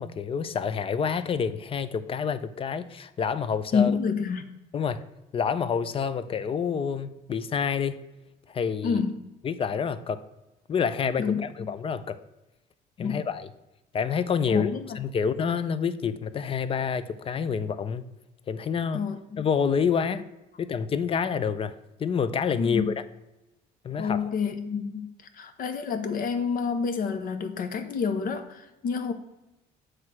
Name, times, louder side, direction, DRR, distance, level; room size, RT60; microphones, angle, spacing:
voice 1, 0.0-3.9 4.7-5.0 5.3-8.0 8.5-9.0 9.4-10.2 10.7-12.2 13.0-13.5 13.9-14.7 14.9-18.1 18.5-19.0 19.4-20.2 20.6-21.7 22.0-22.9 23.8-24.3, left 6 dB, 35° left, 0.5 m, -28 dB
voice 2, 3.7-4.5 8.8-9.2 11.2-11.4 13.0-13.2 14.5-15.0 18.9-19.4 22.6-22.9 24.0-25.1 25.3-29.1, left 6 dB, 55° left, 0.9 m, -28 dB
7.7 x 3.2 x 5.9 m
cardioid pair, 110°, 17 cm